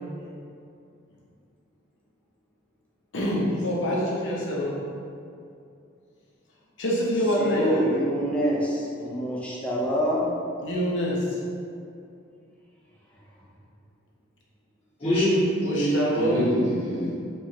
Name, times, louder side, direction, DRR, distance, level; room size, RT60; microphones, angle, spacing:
voice 1, 3.1-4.8 6.8-7.8 10.6-11.4 15.6-16.5, equal, 65° left, -4 dB, 0.7 m, -26 dB
voice 2, 7.4-10.3, equal, 5° left, -5 dB, 0.5 m, -26 dB
voice 3, 15.0-17.1, equal, 30° left, -14 dB, 0.8 m, -24 dB
4.5 x 2.4 x 2.8 m, 2.5 s
head